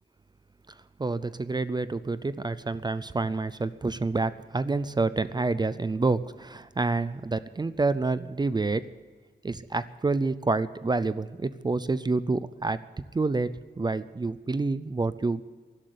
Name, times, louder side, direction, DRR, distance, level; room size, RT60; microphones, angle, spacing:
voice 1, 1.0-8.9 9.4-12.8 13.1-15.4, right 3 dB, 25° right, 15 dB, 0.4 m, -28 dB
13.0 x 11.5 x 9.4 m, 1.4 s
wide cardioid pair, 170°, 19 cm